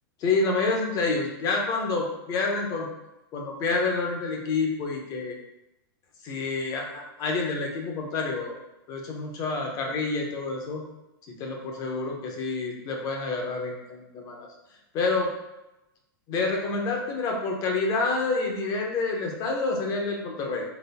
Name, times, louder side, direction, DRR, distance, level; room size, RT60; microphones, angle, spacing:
voice 1, 0.2-2.9 3.3-5.3 6.2-8.6 8.9-10.8 11.4-14.5 14.9-15.3 16.3-20.6, left 3 dB, 30° left, 1 dB, 0.9 m, -28 dB
4.0 x 3.1 x 4.2 m, 0.95 s
supercardioid pair, 150°, 12 cm